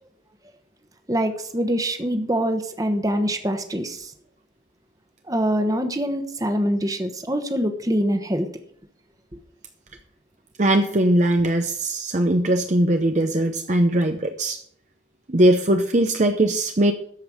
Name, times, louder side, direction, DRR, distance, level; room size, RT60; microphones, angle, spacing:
voice 1, 1.1-4.1 5.3-8.5, equal, 20° right, 7 dB, 1.2 m, -24 dB
voice 2, 10.6-14.6 15.3-16.9, right 1 dB, 40° right, 6 dB, 0.7 m, -20 dB
13.5 x 5.3 x 7.7 m, 0.63 s
head